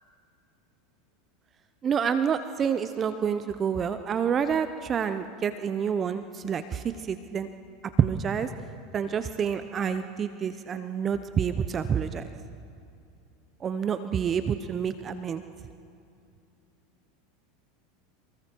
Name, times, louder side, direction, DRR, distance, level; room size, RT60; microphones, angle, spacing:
voice 1, 1.8-7.5 8.0-8.5 8.9-12.3 13.6-15.4, right 7 dB, 30° right, 10 dB, 0.8 m, -28 dB
28.0 x 20.5 x 4.6 m, 2.5 s
hypercardioid pair, 100°, 0 cm